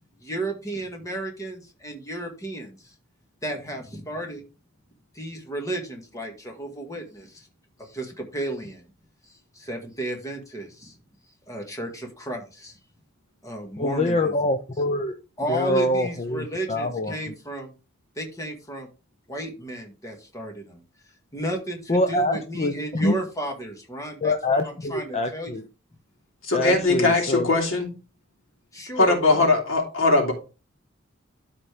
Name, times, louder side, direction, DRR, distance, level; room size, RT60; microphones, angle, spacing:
voice 1, 0.2-2.9 3.4-4.4 5.2-7.5 7.8-8.8 9.6-11.0 11.5-12.7 13.4-14.3 15.4-17.7 18.2-18.9 19.3-20.8 21.3-24.6 24.9-25.6 26.6-26.8 28.7-29.4, right 1 dB, 15° left, 1.9 m, -33 dB
voice 2, 13.8-15.1 15.5-17.2 21.9-23.1 24.2-25.6 26.5-27.5, left 1 dB, 30° left, 0.7 m, -25 dB
voice 3, 26.4-27.9 29.0-30.3, left 3 dB, 80° left, 3.0 m, -20 dB
13.0 x 4.3 x 3.4 m
head